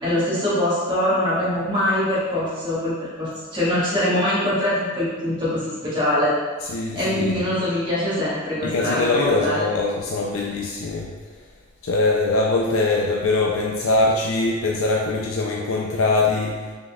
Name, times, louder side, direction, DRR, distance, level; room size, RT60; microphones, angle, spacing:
voice 1, 0.0-6.3 6.9-9.6, left 1 dB, 25° right, -10 dB, 1.3 m, -23 dB
voice 2, 6.7-7.4 8.6-11.1 11.8-16.7, left 2 dB, 80° left, -1 dB, 0.4 m, -22 dB
5.4 x 3.5 x 2.3 m, 1.4 s
head